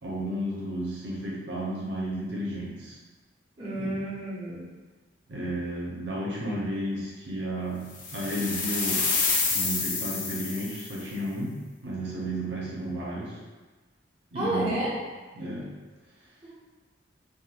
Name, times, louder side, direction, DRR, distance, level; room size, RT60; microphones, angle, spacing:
voice 1, 0.0-3.0 3.7-4.0 5.3-9.1 9.5-11.6 11.8-13.4 14.3-14.9 15.3-15.7, right 1 dB, 65° right, -5 dB, 0.7 m, -33 dB
voice 2, 3.6-4.7 14.3-14.9, right 1 dB, 25° right, -9 dB, 0.6 m, -30 dB
sound 1, 8.0-11.0, left 4 dB, 40° left, 0.4 m, -28 dB
2.5 x 2.4 x 2.8 m, 1.2 s
head